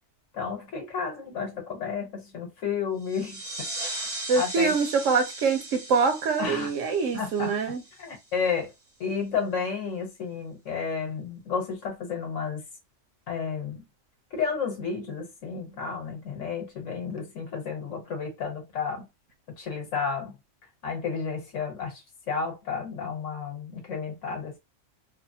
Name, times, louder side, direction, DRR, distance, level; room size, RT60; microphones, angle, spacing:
voice 1, 0.3-3.7 4.3-4.7 6.4-6.7 7.1-7.6 8.0-8.7 9.0-12.6 13.3-13.8 14.3-19.0 19.6-20.4 20.8-22.0 22.3-24.6, left 6 dB, 75° left, 1.5 m, -32 dB
sound 1, 3.0-8.3, right 2 dB, 30° right, 1.2 m, -38 dB
voice 2, 4.3-7.8, right 5 dB, 80° right, 1.1 m, -24 dB
3.3 x 2.0 x 2.7 m
omnidirectional pair, 1.3 m